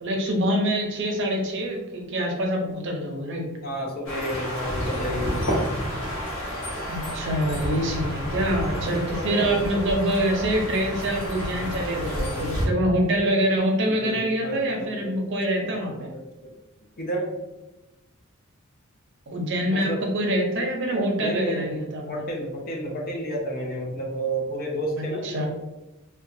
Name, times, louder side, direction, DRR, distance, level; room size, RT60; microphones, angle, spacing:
voice 1, 0.0-3.5 6.9-16.1 19.3-22.2 25.0-25.5, right 1 dB, 55° right, 2 dB, 0.5 m, -25 dB
voice 2, 3.6-5.5 8.7-9.9 11.5-12.8 13.9-15.1 15.6-16.5 17.0-17.3 19.7-20.1 21.2-21.8 22.1-25.5, right 1 dB, 45° left, 0 dB, 0.5 m, -32 dB
sound 1, 4.1-12.7, equal, 65° left, 1.0 m, -30 dB
2.9 x 2.2 x 2.6 m, 1.0 s
head